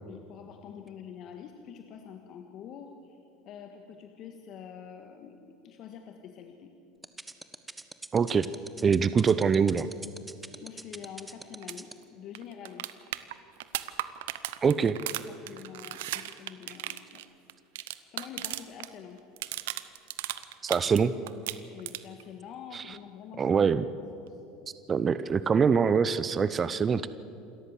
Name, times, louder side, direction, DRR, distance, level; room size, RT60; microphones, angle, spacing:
voice 1, 0.0-3.2 3.4-6.7 10.6-13.2 15.1-17.2 18.1-19.2 21.7-23.6 24.2-24.4, left 8 dB, 50° left, 5 dB, 1.6 m, -46 dB
sound 1, 7.0-11.9, right 2 dB, 15° right, 1.3 m, -41 dB
voice 2, 8.1-8.5 8.8-9.9 14.6-15.0 20.6-21.1 22.7-22.8 23.4-23.8 24.9-27.1, right 6 dB, 30° right, 14 dB, 0.7 m, -24 dB
sound 2, 11.6-11.8 12.0-12.1 12.3-18.9 19.2-21.0 21.3-22.2 24.3-24.4, right 15 dB, 75° right, 0.8 m, -36 dB
28.0 x 13.5 x 7.6 m, 2.7 s
hypercardioid pair, 80°, 0 cm